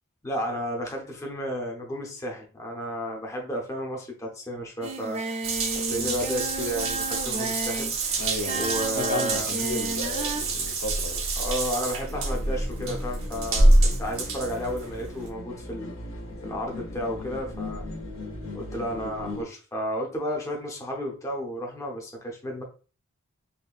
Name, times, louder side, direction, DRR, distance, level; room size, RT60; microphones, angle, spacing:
voice 1, 0.2-5.2 5.7-7.9 8.5-9.5 11.4-15.9 16.4-17.9 18.5-22.6, equal, 15° left, 0.6 m, -32 dB
Singing, 4.8-10.4, right 3 dB, 30° right, 0.3 m, -33 dB
Water tap faucet / Bathtub (filling or washing) / Drip, 5.4-15.3, right 2 dB, 60° right, 0.8 m, -26 dB
voice 2, 8.2-11.2, left 2 dB, 85° left, 0.8 m, -33 dB
sound 1, 12.1-19.4, left 1 dB, 60° left, 0.9 m, -38 dB
3.8 x 2.6 x 2.4 m
head